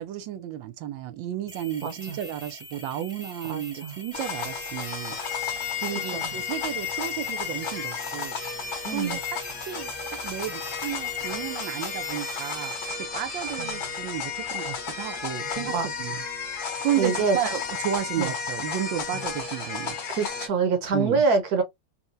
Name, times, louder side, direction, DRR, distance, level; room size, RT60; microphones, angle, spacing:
voice 1, 0.0-5.2 5.8-8.4 8.9-9.2 9.6-16.2 16.5-20.0 20.9-21.3, right 11 dB, 90° right, 1.4 m, -32 dB
sound 1, 1.5-12.9, equal, 5° right, 0.7 m, -44 dB
voice 2, 1.8-2.2 3.4-4.0 6.1-6.2 8.8-9.2 13.6-13.8 15.6-15.9 17.0-17.4 18.2-18.3 20.1-21.6, right 4 dB, 65° right, 1.2 m, -25 dB
sound 2, 4.1-20.5, left 6 dB, 60° left, 1.5 m, -32 dB
4.3 x 2.2 x 2.5 m
omnidirectional pair, 2.0 m